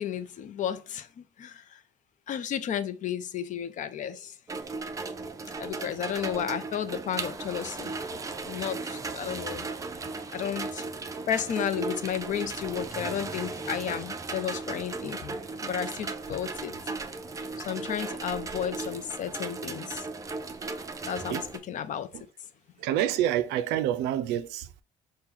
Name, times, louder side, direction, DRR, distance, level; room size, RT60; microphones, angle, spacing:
voice 1, 0.0-1.8 2.3-4.3 5.6-9.7 10.3-10.8 11.3-15.4 15.6-16.8 17.6-20.0 21.1-21.4 21.7-22.1, left 9 dB, 50° left, 0.5 m, -33 dB
sound 1, 4.5-21.6, right 3 dB, 20° right, 0.4 m, -36 dB
voice 2, 22.8-24.8, right 11 dB, 90° right, 0.4 m, -27 dB
4.4 x 2.2 x 3.6 m
cardioid pair, 110°, 17 cm